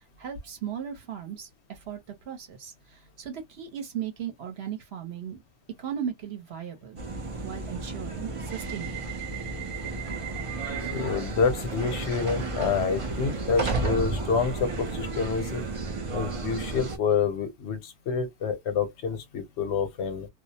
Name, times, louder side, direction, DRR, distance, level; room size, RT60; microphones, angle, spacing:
voice 1, 0.2-2.0 2.3-5.4 5.8-7.0 7.4-9.1, right 8 dB, 65° right, 1.0 m, -37 dB
sound 1, 7.0-17.0, right 3 dB, 40° right, 0.5 m, -32 dB
voice 2, 10.9-15.6 16.1-20.3, left 6 dB, 70° left, 1.0 m, -28 dB
2.4 x 2.0 x 2.7 m
omnidirectional pair, 1.2 m